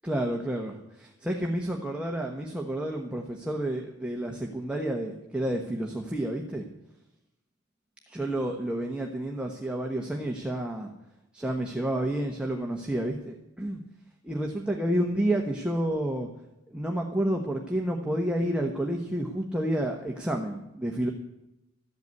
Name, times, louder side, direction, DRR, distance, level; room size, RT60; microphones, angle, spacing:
voice 1, 0.0-6.7 8.1-10.9 11.3-13.8 14.2-16.3 16.7-21.1, right 1 dB, 5° right, 1 dB, 1.1 m, -30 dB
14.0 x 8.2 x 9.4 m, 0.90 s
head